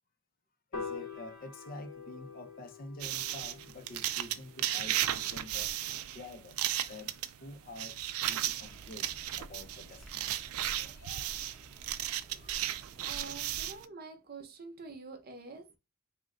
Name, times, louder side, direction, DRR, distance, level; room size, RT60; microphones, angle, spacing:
Piano, 0.7-7.0, left 5 dB, 90° left, 1.2 m, -47 dB
voice 1, 0.7-11.3 11.9-12.7, left 2 dB, 40° left, 0.5 m, -49 dB
sound 1, 3.0-13.8, right 12 dB, 85° right, 0.4 m, -35 dB
sound 2, 8.4-13.8, right 1 dB, ahead, 0.8 m, -53 dB
voice 2, 12.3-15.7, right 3 dB, 45° right, 0.7 m, -47 dB
3.7 x 2.1 x 3.7 m
head